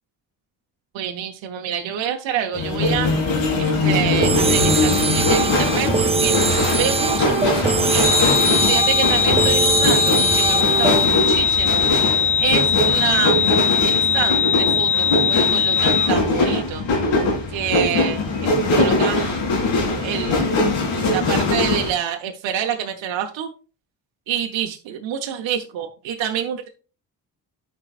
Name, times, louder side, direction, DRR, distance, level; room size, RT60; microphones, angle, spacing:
voice 1, 0.9-3.1 3.6-6.3 6.8-8.2 8.7-11.8 12.4-16.8 17.5-19.4 20.0-20.6 20.9-23.5 24.3-26.7, right 9 dB, 75° right, 3 dB, 1.0 m, -27 dB
sound 1, 2.5-21.9, left 2 dB, 80° left, 2.4 m, -21 dB
sound 2, 4.2-11.1, right 4 dB, 15° right, 0.3 m, -22 dB
sound 3, 8.0-16.1, left 6 dB, 65° left, 1.5 m, -20 dB
12.5 x 4.7 x 2.5 m, 0.35 s
supercardioid pair, 55°, 45 cm